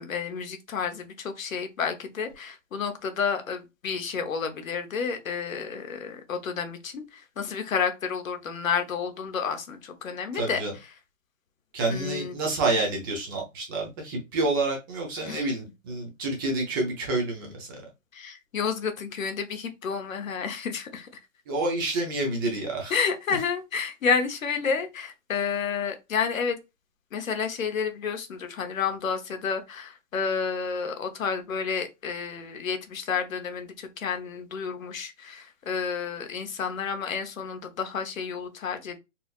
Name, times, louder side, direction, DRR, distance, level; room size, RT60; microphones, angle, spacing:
voice 1, 0.0-10.6 11.9-12.3 15.3-15.5 18.1-21.1 22.9-26.6 27.1-39.0, left 6 dB, 80° left, 1.0 m, -30 dB
voice 2, 10.3-10.7 11.7-17.9 21.5-22.9, right 2 dB, 15° right, 0.6 m, -28 dB
4.2 x 2.5 x 2.3 m
hypercardioid pair, 145°, 40 cm